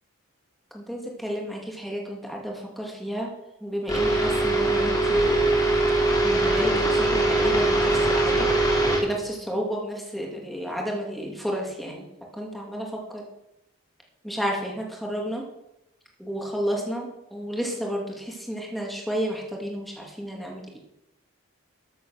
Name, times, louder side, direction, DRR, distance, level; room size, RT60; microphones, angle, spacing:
voice 1, 0.7-3.3 3.6-5.5 6.2-8.5 9.0-12.1 12.4-13.2 14.2-15.4 16.2-20.8, equal, ahead, -1 dB, 2.4 m, -31 dB
sound 1, 3.9-9.0, right 2 dB, 15° left, 3.2 m, -21 dB
13.5 x 7.5 x 6.4 m, 0.86 s
head